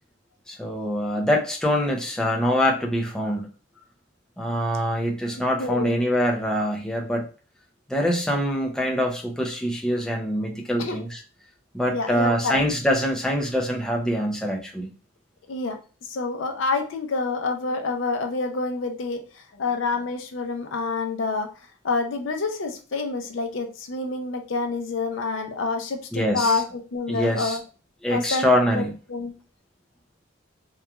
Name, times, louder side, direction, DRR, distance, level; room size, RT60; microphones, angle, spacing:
voice 1, 0.5-3.5 4.4-7.2 7.9-11.2 11.7-14.9 26.1-26.6 27.1-27.6 28.0-28.9, equal, 5° left, -1 dB, 0.4 m, -24 dB
voice 2, 5.6-6.0 10.8-11.0 11.9-12.6 15.5-15.8 16.1-21.5 21.8-27.6 28.1-28.8 29.1-29.3, left 3 dB, 65° left, 5 dB, 0.5 m, -27 dB
2.8 x 2.3 x 2.3 m, 0.36 s
head